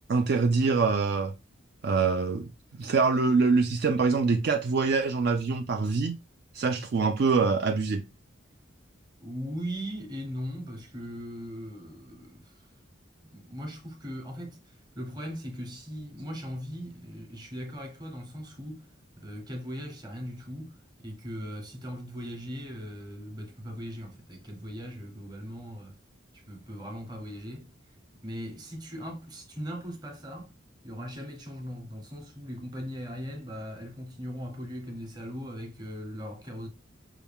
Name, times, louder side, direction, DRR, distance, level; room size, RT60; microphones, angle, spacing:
voice 1, 0.1-1.3 1.8-2.5 2.8-6.2 6.5-8.0, right 4 dB, 55° right, 0.4 m, -24 dB
voice 2, 9.2-12.7 13.3-18.8 19.2-26.0 26.3-27.7 28.2-30.5 30.8-36.7, equal, 20° right, 1.0 m, -39 dB
5.7 x 2.3 x 3.5 m
head